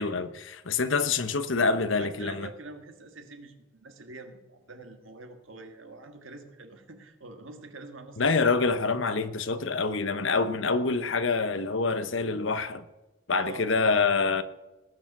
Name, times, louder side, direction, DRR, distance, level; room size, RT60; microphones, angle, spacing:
voice 1, 0.0-2.5 8.2-12.8 13.3-14.4, left 4 dB, 65° left, 0.9 m, -26 dB
voice 2, 1.9-8.5 13.3-14.3, right 3 dB, 75° right, 1.8 m, -44 dB
19.0 x 6.9 x 6.1 m
head